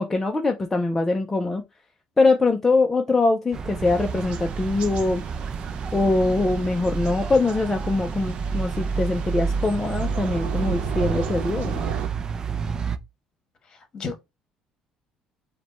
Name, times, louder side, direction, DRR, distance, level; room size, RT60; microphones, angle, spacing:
voice 1, 0.0-1.6 2.2-5.2 5.9-11.8, left 3 dB, 15° left, 0.5 m, -23 dB
sound 1, 3.5-13.0, right 5 dB, 30° right, 0.4 m, -29 dB
Thunder / Rain, 3.8-12.1, right 7 dB, 70° right, 0.8 m, -38 dB
voice 2, 13.6-14.2, left 4 dB, 35° left, 1.3 m, -34 dB
5.0 x 2.2 x 4.2 m
cardioid pair, 130°, 2 cm